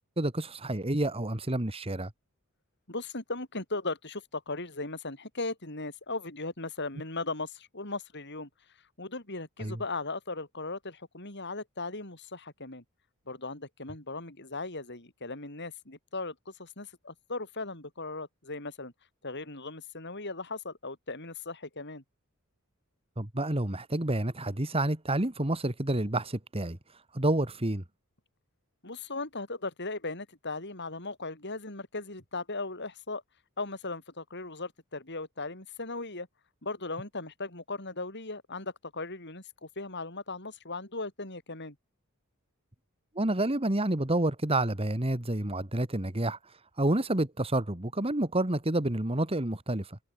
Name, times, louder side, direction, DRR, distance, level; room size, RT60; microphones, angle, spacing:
voice 1, 0.2-2.1 9.6-9.8 23.2-26.8 27.1-27.8 43.2-46.4 46.8-50.0, right 1 dB, 25° right, 2.0 m, -29 dB
voice 2, 2.9-8.5 9.0-12.8 13.3-18.9 19.2-22.0 28.8-33.2 33.6-36.3 36.6-41.8, left 3 dB, 55° left, 7.9 m, -38 dB
head